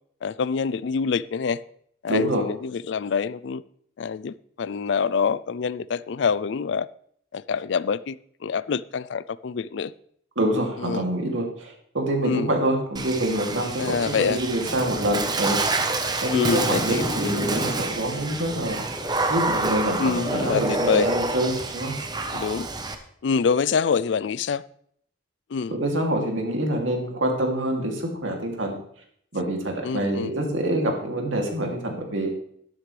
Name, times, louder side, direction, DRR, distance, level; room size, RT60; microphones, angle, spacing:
voice 1, 0.2-1.6 2.0-3.6 4.0-6.9 7.3-8.2 8.4-9.9 10.8-11.0 12.2-12.5 13.8-14.4 16.3-17.4 20.0-21.1 22.3-22.7 23.2-24.6 25.5-25.8 29.8-30.3, left 6 dB, 65° left, 0.4 m, -26 dB
voice 2, 2.1-2.5 10.4-15.6 16.2-18.8 19.3-22.0 25.7-28.8 29.3-32.3, right 1 dB, 80° right, 2.6 m, -26 dB
Water / Splash splatter, 13.0-23.0, right 2 dB, 20° right, 0.9 m, -27 dB
12.5 x 11.5 x 3.3 m
head